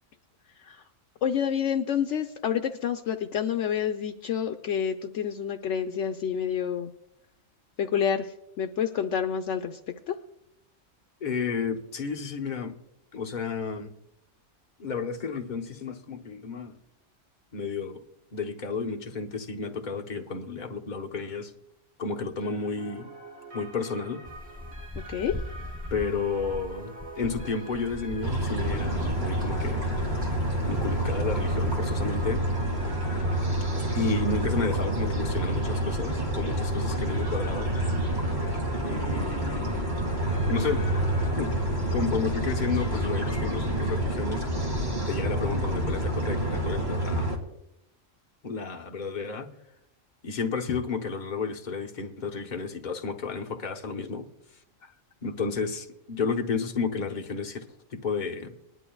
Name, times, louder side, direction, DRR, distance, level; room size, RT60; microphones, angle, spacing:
voice 1, 1.2-6.9 7.8-9.8 10.1-10.2 25.1-25.4, left 8 dB, 70° left, 5 dB, 0.9 m, -28 dB
voice 2, 11.2-12.8 13.1-13.9 14.8-16.8 17.5-18.0 18.3-21.5 22.0-23.1 23.5-24.2 25.9-29.9 30.6-32.4 33.9-37.7 38.8-39.9 40.3-40.9 41.4-41.5 41.9-44.4 45.1-47.4 48.4-49.5 50.2-54.3 54.8-54.9 55.2-58.6, left 5 dB, 40° left, 3 dB, 1.0 m, -32 dB
sound 1, 22.4-41.4, right 2 dB, 85° right, 2.1 m, -45 dB
sound 2, 24.2-32.3, left 1 dB, 15° right, 0.3 m, -40 dB
sound 3, 28.2-47.4, right 1 dB, 35° right, 2.3 m, -28 dB
20.5 x 11.0 x 2.3 m, 0.84 s
omnidirectional pair, 1.4 m